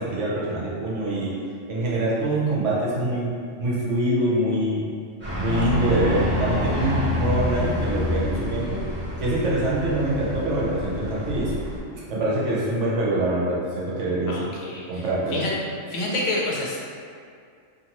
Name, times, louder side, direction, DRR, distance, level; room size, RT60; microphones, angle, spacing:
voice 1, 0.0-1.3 1.7-3.3 3.6-4.8 5.4-8.8 9.2-11.5 12.1-14.5 14.9-15.4, right 1 dB, 70° right, -7 dB, 1.0 m, -24 dB
sound 1, 5.2-11.8, left 1 dB, 10° right, 0.6 m, -27 dB
voice 2, 14.3-15.0 15.3-15.5 15.9-16.8, left 2 dB, 75° left, -3 dB, 0.9 m, -28 dB
2.6 x 2.5 x 2.9 m, 2.2 s
omnidirectional pair, 1.3 m